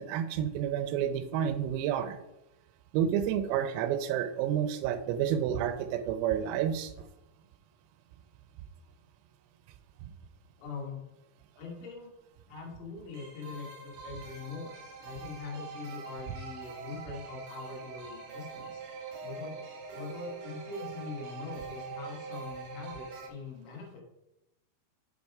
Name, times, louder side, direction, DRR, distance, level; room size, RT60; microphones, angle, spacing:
voice 1, 0.0-2.2 2.9-7.1, right 9 dB, 90° right, 8 dB, 3.3 m, -30 dB
voice 2, 10.6-11.0 11.6-12.1 12.5-18.8 19.2-19.6 19.9-24.0, left 4 dB, 75° left, -1 dB, 4.1 m, -42 dB
sound 1, 13.1-23.3, right 5 dB, 70° right, 2.7 m, -44 dB
7.7 x 5.3 x 4.7 m, 0.91 s
omnidirectional pair, 5.9 m